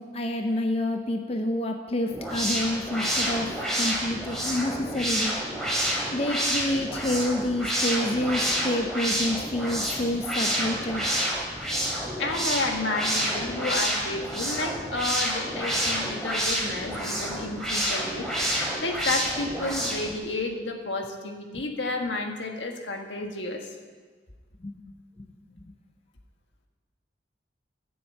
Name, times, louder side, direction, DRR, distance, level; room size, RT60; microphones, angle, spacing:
voice 1, 0.0-5.4 6.1-11.0 21.5-21.6 24.6-24.8 25.2-25.3, left 1 dB, 35° left, 4 dB, 0.6 m, -28 dB
sound 1, 2.1-20.1, equal, ahead, 2.6 m, -29 dB
voice 2, 12.2-23.7, left 2 dB, 80° left, 3 dB, 1.6 m, -31 dB
13.0 x 7.1 x 8.5 m, 1.5 s
head